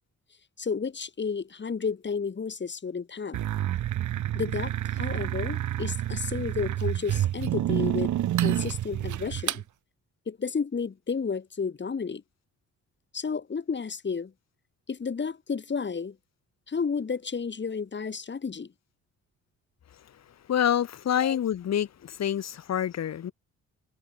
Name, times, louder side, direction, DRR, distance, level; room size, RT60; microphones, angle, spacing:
voice 1, 0.6-3.4 4.3-8.1 8.4-9.6 10.3-12.2 13.1-14.3 14.9-16.1 16.7-18.7 21.2-21.4, left 5 dB, 35° left, 8.0 m, -32 dB
sound 1, 3.3-9.6, right 12 dB, 75° right, 5.1 m, -28 dB
voice 2, 20.5-23.3, left 10 dB, 60° left, 2.8 m, -27 dB
cardioid pair, 90°, 30 cm